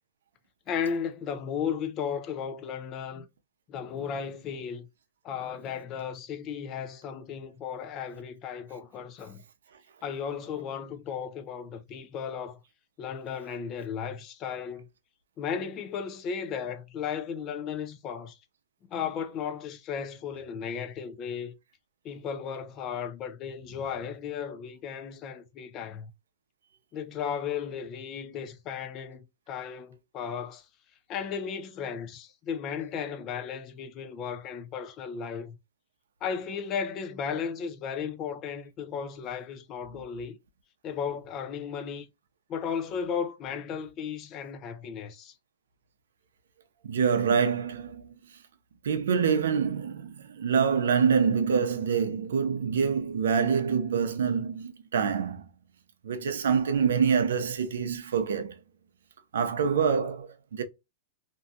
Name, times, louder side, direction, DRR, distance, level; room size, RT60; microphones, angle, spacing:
voice 1, 0.7-3.3 3.7-4.9 5.2-9.4 10.0-12.6 13.0-14.9 15.4-18.4 18.9-21.5 22.0-26.1 26.9-30.7 31.1-35.6 36.2-40.4 40.8-42.1 42.5-45.3, left 7 dB, 30° left, 0.4 m, -35 dB
voice 2, 46.8-48.1 48.8-55.4 56.0-58.6 59.3-60.6, right 6 dB, 85° right, 0.5 m, -26 dB
2.6 x 2.3 x 2.6 m
hypercardioid pair, 145°, 0 cm